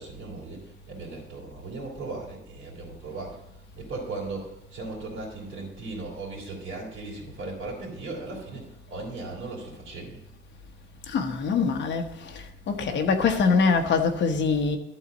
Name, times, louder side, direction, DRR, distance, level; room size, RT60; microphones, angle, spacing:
voice 1, 0.0-3.4 3.8-10.2, right 3 dB, 80° right, 3.1 m, -37 dB
voice 2, 11.1-14.8, left 5 dB, 60° left, 1.1 m, -24 dB
12.0 x 4.1 x 7.2 m
cardioid pair, 165°, 21 cm